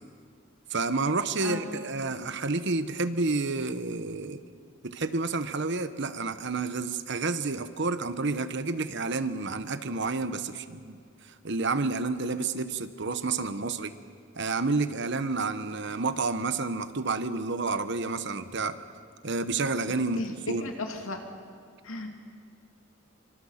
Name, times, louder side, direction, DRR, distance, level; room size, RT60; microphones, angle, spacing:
voice 1, 0.7-4.4 4.8-11.0 11.4-13.9 14.4-18.8 19.2-20.6, right 3 dB, 60° right, 11 dB, 1.1 m, -30 dB
voice 2, 19.8-21.2 21.8-22.2, left 2 dB, 90° left, 3 dB, 2.8 m, -36 dB
26.5 x 25.0 x 5.9 m, 2.3 s
head